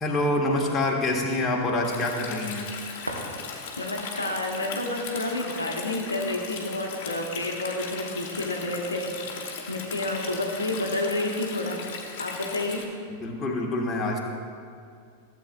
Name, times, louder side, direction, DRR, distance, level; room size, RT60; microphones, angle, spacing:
voice 1, 0.0-2.7 13.1-14.2, left 2 dB, 20° left, -2 dB, 1.4 m, -26 dB
Stream, 1.8-12.8, left 5 dB, 50° left, 1.2 m, -38 dB
sound 1, 2.9-4.0, equal, 85° right, 0.9 m, -39 dB
voice 2, 3.8-11.8 12.2-12.8, left 1 dB, 80° left, 1 dB, 0.8 m, -30 dB
15.0 x 7.7 x 2.3 m, 2.3 s
figure-of-eight pair, 90°, 0 cm